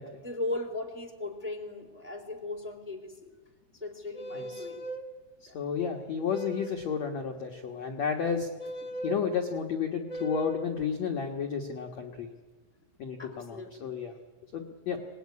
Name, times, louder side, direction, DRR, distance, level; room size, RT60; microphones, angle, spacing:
voice 1, 0.2-3.3 3.8-4.8 5.5-5.6 8.8-8.9 13.2-13.9, left 2 dB, 5° right, 1 dB, 2.2 m, -38 dB
sound 1, 4.1-5.1 6.3-6.9 8.6-9.2 10.1-10.7, right 2 dB, 35° left, 1.4 m, -38 dB
voice 2, 5.4-8.5 9.0-12.3 13.0-14.1 14.5-15.0, left 6 dB, 75° left, 2 dB, 1.6 m, -32 dB
25.5 x 19.5 x 9.6 m, 1.2 s
omnidirectional pair, 5.6 m